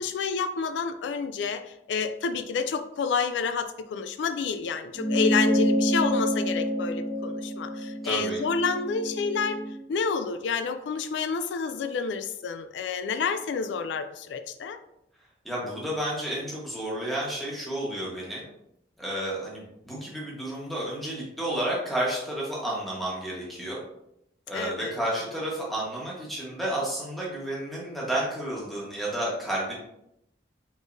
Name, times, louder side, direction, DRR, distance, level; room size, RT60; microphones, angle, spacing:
voice 1, 0.0-9.6 9.9-14.8 24.5-25.0, left 5 dB, 90° left, 10 dB, 0.3 m, -29 dB
sound 1, 4.9-9.7, equal, 50° right, 1.6 m, -27 dB
voice 2, 8.0-8.4 15.4-18.4 19.0-23.8 24.5-29.8, right 1 dB, ahead, -5 dB, 1.3 m, -31 dB
4.9 x 4.0 x 2.6 m, 0.81 s
head